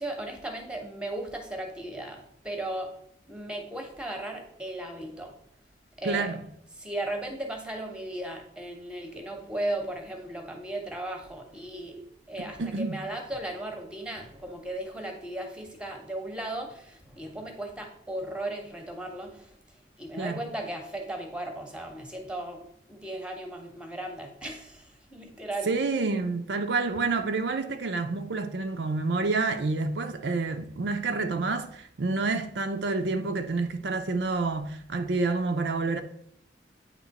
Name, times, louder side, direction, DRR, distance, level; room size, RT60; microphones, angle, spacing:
voice 1, 0.0-3.0 3.3-5.4 6.0-6.4 6.7-19.5 20.0-22.6 22.9-25.7, right 1 dB, 5° right, 0.8 m, -36 dB
voice 2, 6.0-6.4 12.6-13.0 20.1-20.4 25.7-36.0, right 3 dB, 70° right, 0.5 m, -28 dB
8.8 x 3.0 x 4.0 m
head